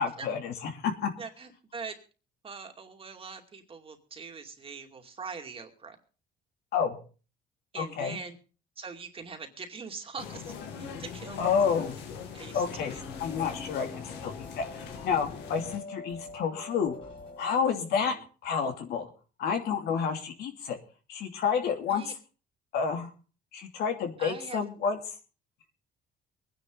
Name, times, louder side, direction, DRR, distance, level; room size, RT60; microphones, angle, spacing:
voice 1, 0.0-1.1 6.7-7.0 7.8-8.2 11.4-11.9 12.5-12.9 13.2-17.0 17.4-18.1 18.4-19.1 19.4-20.8 21.1-22.0 22.7-23.1 23.5-25.0, left 6 dB, 70° left, 4 dB, 2.8 m, -29 dB
voice 2, 1.2-2.0 2.4-6.0 7.7-8.4 8.8-11.4 12.3-13.0 18.1-18.2 21.9-22.1 24.2-24.6, right 5 dB, 35° right, 4 dB, 2.5 m, -42 dB
sound 1, 10.2-15.8, left 6 dB, 90° left, 2.3 m, -42 dB
sound 2, 12.8-17.8, left 3 dB, 30° left, 3.6 m, -45 dB
23.0 x 10.0 x 3.9 m, 0.37 s
cardioid pair, 110°, 17 cm